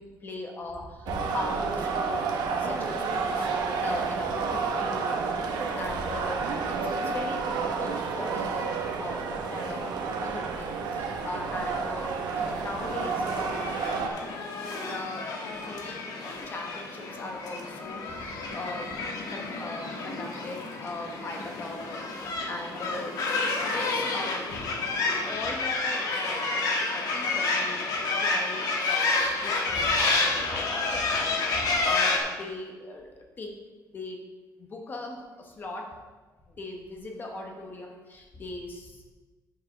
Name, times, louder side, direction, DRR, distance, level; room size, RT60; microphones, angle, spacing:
voice 1, 0.0-2.2 2.6-3.5 3.8-13.7 14.8-19.0 19.3-24.7 25.2-26.6 26.9-33.1 33.4-33.5 33.9-34.2 34.6-35.8 36.5-39.0, left 2 dB, 25° left, 1 dB, 0.9 m, -39 dB
sound 1, 1.1-14.1, right 4 dB, 75° right, 1.0 m, -30 dB
sound 2, 12.3-32.2, left 3 dB, 60° left, 1.2 m, -30 dB
7.4 x 4.7 x 5.9 m, 1.3 s
cardioid pair, 175°, 7 cm